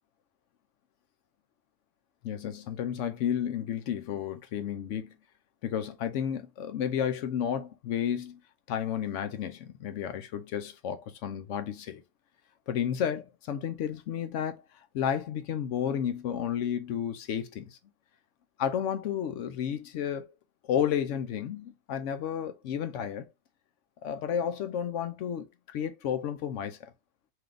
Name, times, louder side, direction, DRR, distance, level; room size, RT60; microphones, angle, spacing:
voice 1, 2.2-5.1 5.6-8.4 8.7-12.0 12.7-14.6 14.9-17.8 18.6-20.3 20.6-23.2 24.0-26.9, left 9 dB, 70° left, 0.9 m, -32 dB
3.3 x 2.7 x 3.8 m
omnidirectional pair, 1.4 m